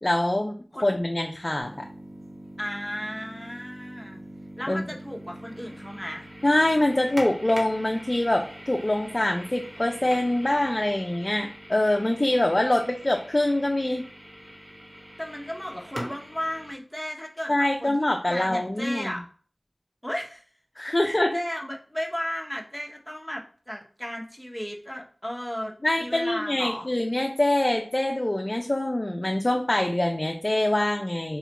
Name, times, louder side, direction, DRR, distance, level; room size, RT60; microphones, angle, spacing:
voice 1, 0.0-0.5 0.8-1.8 4.7-4.8 6.4-14.0 17.5-19.1 20.8-21.4 25.8-31.4, left 1 dB, 40° left, 3 dB, 0.4 m, -24 dB
sound 1, 1.6-16.7, equal, 40° right, 1.0 m, -43 dB
voice 2, 2.6-4.2 4.6-6.3 15.2-19.2 20.0-20.4 21.0-25.7 26.0-26.9, equal, 10° left, 0 dB, 0.8 m, -34 dB
4.2 x 2.3 x 2.9 m, 0.42 s
wide cardioid pair, 45°, 0 cm